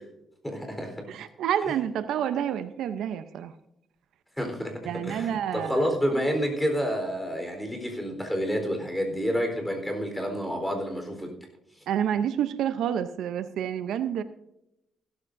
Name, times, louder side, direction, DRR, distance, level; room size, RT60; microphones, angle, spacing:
voice 1, 0.4-1.0 4.4-4.7 5.0-11.3, equal, 5° left, 4 dB, 4.0 m, -29 dB
voice 2, 1.1-3.5 4.9-5.7 11.9-14.2, right 9 dB, 80° right, 11 dB, 0.7 m, -28 dB
16.0 x 13.5 x 2.7 m, 0.84 s
cardioid pair, 90°, 0 cm